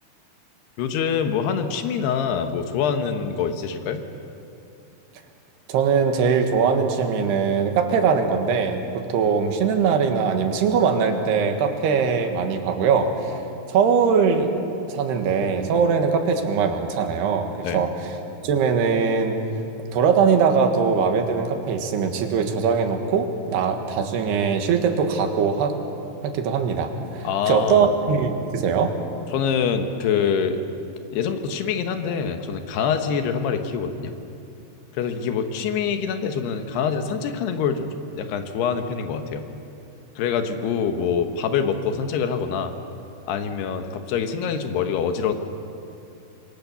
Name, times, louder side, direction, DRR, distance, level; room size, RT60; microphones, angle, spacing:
voice 1, 0.8-4.0 17.6-17.8 27.2-27.9 29.3-30.6 31.1-34.1 34.9-39.5 40.2-42.7 43.3-45.3, left 7 dB, 90° left, 7 dB, 3.4 m, -25 dB
voice 2, 5.7-13.4 13.7-14.6 14.9-18.1 18.4-19.4 19.9-25.8 26.2-28.9, right 6 dB, 90° right, 5 dB, 3.7 m, -21 dB
27.0 x 22.5 x 7.0 m, 2.7 s
omnidirectional pair, 4.6 m